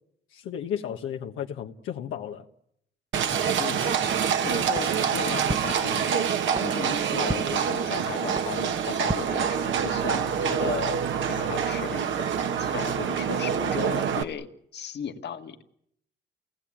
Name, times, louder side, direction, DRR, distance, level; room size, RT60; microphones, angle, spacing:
voice 1, 0.3-2.5, left 9 dB, 85° left, 1.4 m, -33 dB
Livestock farm animals working animals, 3.1-14.2, right 7 dB, 70° right, 1.9 m, -26 dB
voice 2, 4.4-6.3 6.6-11.0 11.3-12.3 12.6-14.5 14.7-15.6, left 7 dB, 60° left, 1.9 m, -35 dB
sound 1, 4.7-10.1, right 2 dB, 20° right, 1.2 m, -38 dB
29.0 x 18.5 x 8.8 m
cardioid pair, 90°, 20 cm